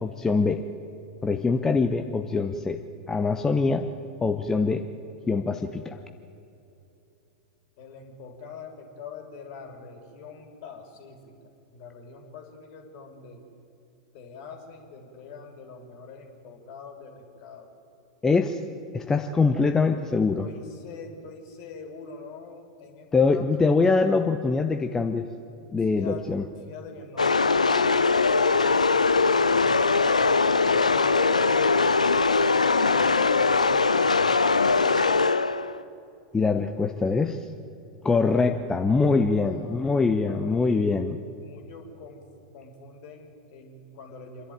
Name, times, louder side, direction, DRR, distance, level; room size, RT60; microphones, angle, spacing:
voice 1, 0.0-0.6 1.2-2.8 3.1-3.9 4.2-4.8 5.3-6.0 18.2-18.6 18.9-20.5 23.1-25.3 25.7-26.5 36.3-37.4 38.0-41.2, left 4 dB, 15° left, 6 dB, 0.9 m, -23 dB
voice 2, 7.8-11.3 11.7-13.4 14.1-17.7 20.4-23.4 25.9-26.2 26.7-27.9 39.4-40.9 41.4-42.2 42.5-44.5, left 4 dB, 45° left, 4 dB, 3.6 m, -44 dB
sound 1, 27.2-35.8, left 4 dB, 80° left, 0.6 m, -21 dB
28.0 x 11.5 x 9.0 m, 2.9 s
figure-of-eight pair, 90°, 4 cm